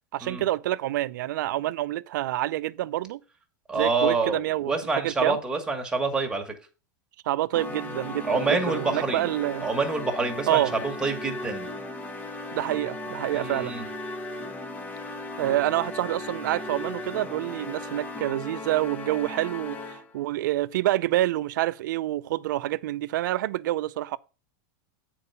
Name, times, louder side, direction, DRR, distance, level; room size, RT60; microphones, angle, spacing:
voice 1, 0.1-3.2 3.7-4.7 5.0-5.4 7.3-9.7 10.5-10.7 12.5-13.7 15.4-24.2, right 15 dB, 75° right, 0.5 m, -27 dB
voice 2, 3.7-4.4 4.7-6.5 8.2-9.3 9.6-11.7 13.3-13.8, right 3 dB, 5° right, 1.6 m, -27 dB
sound 1, 7.5-20.2, left 2 dB, 15° left, 1.1 m, -36 dB
8.6 x 4.7 x 5.6 m
supercardioid pair, 135°, 10 cm